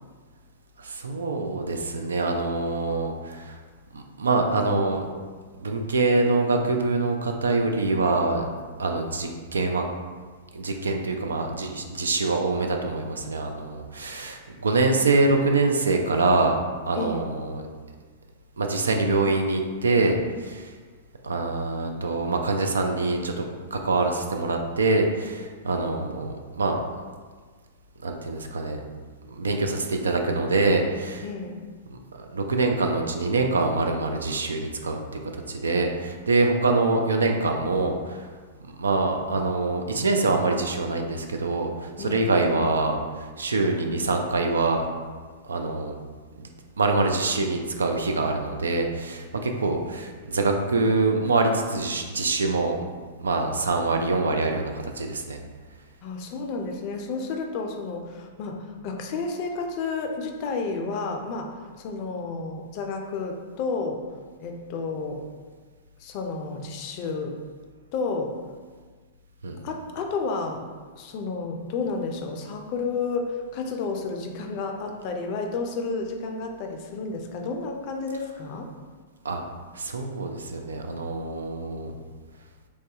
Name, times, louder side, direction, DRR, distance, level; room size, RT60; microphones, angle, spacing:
voice 1, 0.8-3.6 3.9-5.1 5.6-8.4 8.8-9.8 10.5-16.6 16.9-17.7 18.6-20.7 21.2-26.8 28.0-28.8 29.3-31.2 31.9-35.0 35.3-38.3 38.8-44.9 45.4-45.9 46.4-46.5 46.8-52.8 53.2-55.4 69.4-69.6 79.2-79.4 79.7-81.9, right 3 dB, 90° right, 4 dB, 0.3 m, -25 dB
voice 2, 17.0-17.3 31.2-31.6 42.0-42.5 56.0-64.0 64.4-65.3 66.0-67.4 67.9-68.4 69.6-70.6 71.0-78.7, left 4 dB, 50° left, 3 dB, 0.4 m, -31 dB
3.1 x 2.3 x 2.7 m, 1.5 s
hypercardioid pair, 110°, 0 cm